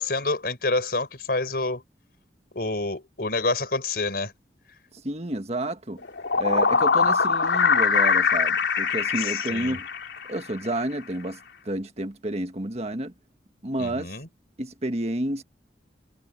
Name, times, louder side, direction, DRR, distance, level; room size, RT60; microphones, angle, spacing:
voice 1, 0.0-1.8 2.5-4.3 9.2-9.8 13.8-14.3, left 3 dB, 60° left, 5.1 m, -28 dB
voice 2, 4.9-6.0 6.4-9.9 10.3-11.4 11.6-13.1 13.6-14.1 14.6-15.4, right 1 dB, 35° right, 1.6 m, -30 dB
sound 1, 6.0-10.4, left 5 dB, 90° left, 3.5 m, -22 dB
head